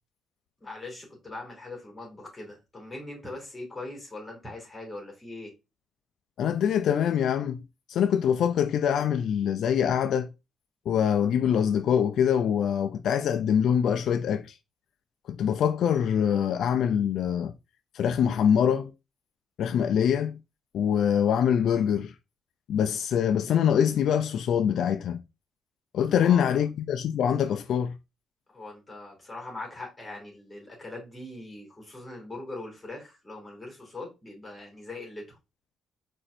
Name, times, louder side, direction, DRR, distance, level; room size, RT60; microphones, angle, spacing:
voice 1, 0.6-5.5 26.2-26.6 28.5-35.4, left 2 dB, 20° left, 2.9 m, -41 dB
voice 2, 6.4-7.6 7.9-10.3 10.9-14.5 15.3-17.5 17.9-18.9 19.6-20.4 20.7-22.1 22.7-25.2 25.9-28.0, left 8 dB, 70° left, 0.3 m, -24 dB
4.2 x 4.2 x 2.5 m
cardioid pair, 90°, 0 cm